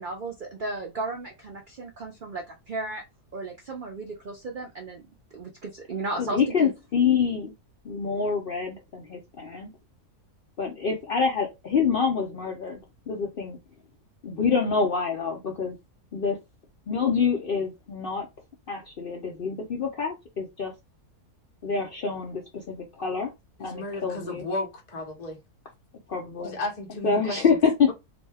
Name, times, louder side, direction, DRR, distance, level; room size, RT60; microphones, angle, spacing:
voice 1, 0.0-3.0 3.3-5.0 5.3-6.7, right 3 dB, 80° right, 0.4 m, -35 dB
voice 2, 6.2-7.5 7.8-9.7 10.6-12.8 13.1-13.6 14.2-15.8 16.1-16.4 16.9-18.3 18.7-20.7 21.6-23.3 23.6-24.4 26.1-26.6 27.0-27.9, left 5 dB, 80° left, 0.5 m, -26 dB
voice 3, 23.6-25.4 26.4-27.5, left 2 dB, 35° left, 0.7 m, -34 dB
2.7 x 2.1 x 3.3 m
omnidirectional pair, 1.7 m